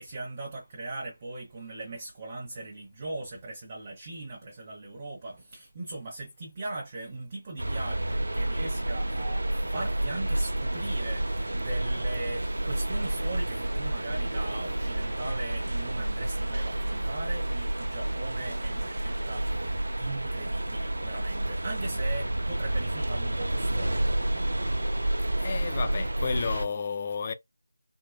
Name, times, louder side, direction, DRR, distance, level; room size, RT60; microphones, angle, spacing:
voice 1, 0.0-24.1, right 2 dB, 30° right, 0.8 m, -39 dB
sound 1, 7.6-26.6, right 1 dB, 75° right, 0.6 m, -30 dB
voice 2, 25.4-27.3, left 5 dB, 30° left, 0.4 m, -32 dB
3.6 x 2.1 x 2.2 m
figure-of-eight pair, 165°, 0 cm